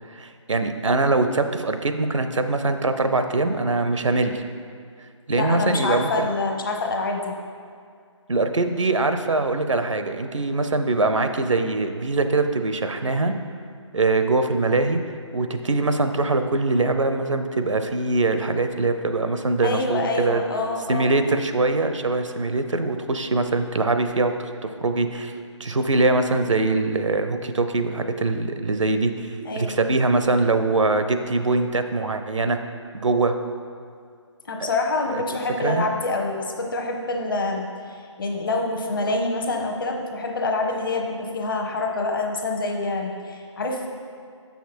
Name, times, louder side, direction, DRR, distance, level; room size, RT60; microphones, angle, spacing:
voice 1, 0.1-4.4 5.3-6.3 8.3-13.3 13.9-15.0 15.3-20.4 20.9-25.3 25.6-32.6 32.9-33.4 34.6-34.7 35.1-35.2 35.6-35.9, right 3 dB, 75° right, 8 dB, 0.6 m, -23 dB
voice 2, 5.3-7.3 19.6-21.1 29.4-29.8 34.5-43.9, left 2 dB, 45° left, 2 dB, 0.9 m, -26 dB
7.0 x 5.8 x 4.4 m, 2.2 s
figure-of-eight pair, 150°, 16 cm